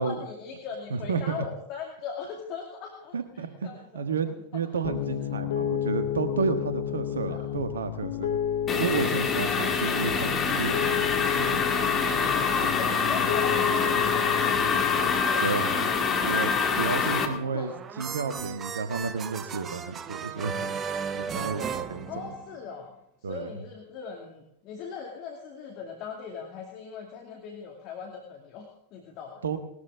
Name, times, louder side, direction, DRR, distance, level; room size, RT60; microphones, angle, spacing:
voice 1, 0.0-4.0 4.5-4.6 4.9-5.1 7.3-7.6 9.0-10.4 12.1-16.2 17.1-17.7 22.0-22.9 23.2-29.6, left 6 dB, 40° left, 1 dB, 2.2 m, -40 dB
voice 2, 0.9-1.3 3.1-8.4 8.8-11.0 11.4-11.6 15.4-15.9 16.2-17.7 18.0-20.8 21.1-22.1 23.2-23.5 29.4-29.6, right 5 dB, 70° right, 9 dB, 1.4 m, -31 dB
Piano, 4.8-15.2, left 9 dB, 55° left, 0.9 m, -31 dB
sound 1, 8.7-17.3, left 5 dB, 25° left, 2.1 m, -26 dB
sound 2, 17.4-22.8, right 6 dB, 25° right, 0.8 m, -35 dB
19.5 x 13.0 x 3.7 m, 0.75 s
figure-of-eight pair, 90°, 0 cm